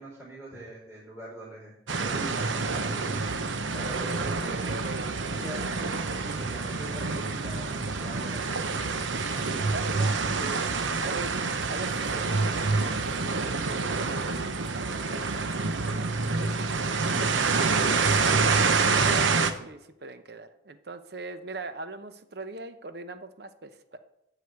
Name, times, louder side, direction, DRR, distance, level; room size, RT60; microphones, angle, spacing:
voice 1, 0.0-4.8 5.4-9.0 9.3-9.4, right 1 dB, 15° right, -6 dB, 4.3 m, -43 dB
sound 1, 1.9-19.5, right 4 dB, 85° right, 0.9 m, -27 dB
voice 2, 2.6-3.3 3.9-5.7 9.7-10.7 11.0-17.1 17.4-17.5 18.2-24.0, right 3 dB, 55° right, 9 dB, 0.8 m, -41 dB
13.0 x 5.0 x 8.2 m, 0.82 s
head